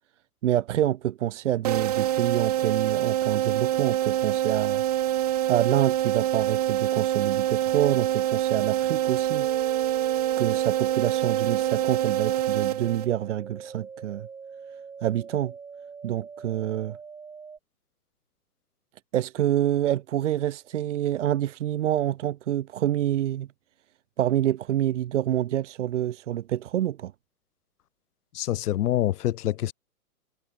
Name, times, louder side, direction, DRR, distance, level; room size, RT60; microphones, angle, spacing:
voice 1, 0.4-4.8 5.2-9.5 9.7-9.9 10.4-14.3 15.0-15.5 16.0-17.0 19.1-23.5 24.2-27.1, right 12 dB, 55° right, 1.1 m, -27 dB
sound 1, 1.6-13.4, right 13 dB, 25° right, 0.6 m, -25 dB
sound 2, 9.3-17.6, right 5 dB, 5° right, 1.6 m, -43 dB
voice 2, 28.3-29.7, left 13 dB, 90° left, 0.6 m, -26 dB
hypercardioid pair, 155°, 44 cm